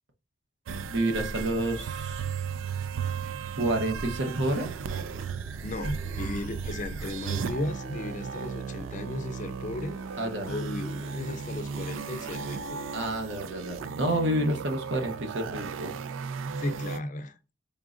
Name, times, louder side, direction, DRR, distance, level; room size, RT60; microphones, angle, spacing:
sound 1, 0.7-17.0, right 6 dB, 85° right, 0.4 m, -35 dB
voice 1, 0.9-2.3 3.6-4.7 10.2-10.5 12.9-16.0, right 1 dB, 70° right, 0.9 m, -29 dB
sound 2, 4.4-13.9, equal, 35° right, 0.6 m, -48 dB
voice 2, 5.6-10.0 10.5-12.8 16.6-17.4, left 2 dB, 40° left, 0.5 m, -35 dB
3.8 x 3.7 x 2.5 m
head